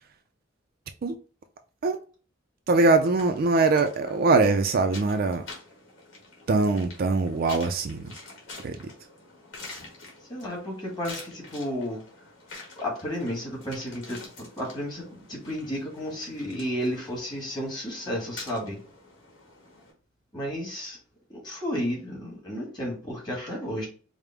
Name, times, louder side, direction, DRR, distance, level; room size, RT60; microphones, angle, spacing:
voice 1, 2.7-5.4 6.5-8.1 8.6-8.9, right 3 dB, 45° right, 0.3 m, -22 dB
sound 1, 3.2-19.9, left 3 dB, 65° left, 1.5 m, -47 dB
voice 2, 10.3-12.0 12.8-18.8 20.3-21.0 21.3-23.9, equal, 20° left, 1.5 m, -32 dB
5.0 x 2.1 x 3.3 m
head